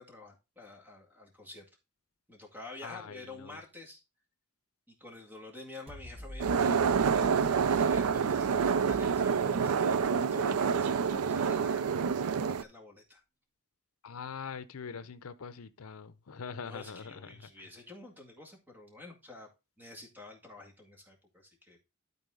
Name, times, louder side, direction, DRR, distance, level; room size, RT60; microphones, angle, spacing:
voice 1, 0.0-1.7 2.3-4.0 4.9-13.2 16.7-19.5 19.8-21.8, left 2 dB, 10° right, 2.1 m, -49 dB
voice 2, 2.8-3.6 14.0-17.5, left 6 dB, 80° left, 0.6 m, -43 dB
sound 1, 5.9-11.5, equal, 25° right, 1.2 m, -48 dB
sound 2, 6.4-12.6, right 6 dB, 90° right, 0.4 m, -27 dB
12.5 x 4.2 x 3.8 m
head